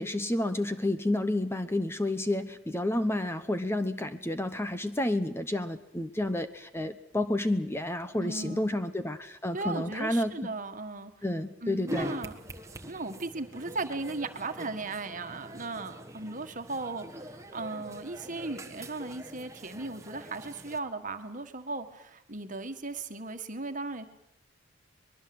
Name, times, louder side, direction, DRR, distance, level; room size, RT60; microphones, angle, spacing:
voice 1, 0.0-10.3 11.2-12.1, left 1 dB, 15° left, 10 dB, 0.9 m, -30 dB
voice 2, 8.2-8.8 9.5-11.1 11.6-12.3 12.9-24.1, right 3 dB, 40° right, 8 dB, 1.7 m, -37 dB
sound 1, 11.9-20.8, equal, 15° right, 1.5 m, -43 dB
23.5 x 21.5 x 7.9 m, 0.82 s
head